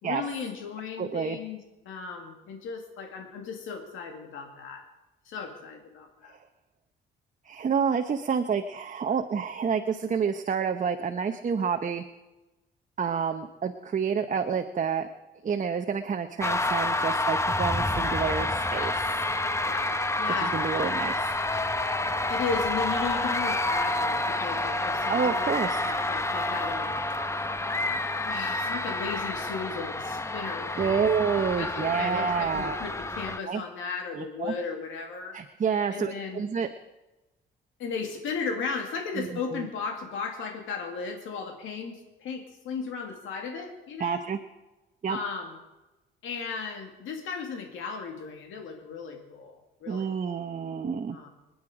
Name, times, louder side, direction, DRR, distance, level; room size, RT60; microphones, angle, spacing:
voice 1, 0.0-1.6 1.9-4.8 5.3-6.3 18.7-18.9 19.6-20.5 22.3-27.0 28.2-31.2 31.6-35.4 35.9-36.4 37.8-44.3 45.1-45.6 46.2-50.4 51.1-51.3, left 5 dB, 85° left, 3 dB, 2.3 m, -36 dB
voice 2, 1.0-1.4 6.3-6.4 7.4-12.0 13.0-15.1 15.4-18.9 20.4-21.3 25.1-25.8 30.8-32.8 33.5-33.6 34.1-34.5 35.3-36.7 39.2-39.7 44.0-44.4 45.0-45.2 49.9-51.2, right 6 dB, 40° right, 6 dB, 0.9 m, -28 dB
sound 1, 16.4-33.4, left 2 dB, 15° left, 0.9 m, -28 dB
25.0 x 9.7 x 5.0 m, 1.0 s
cardioid pair, 90°, 20 cm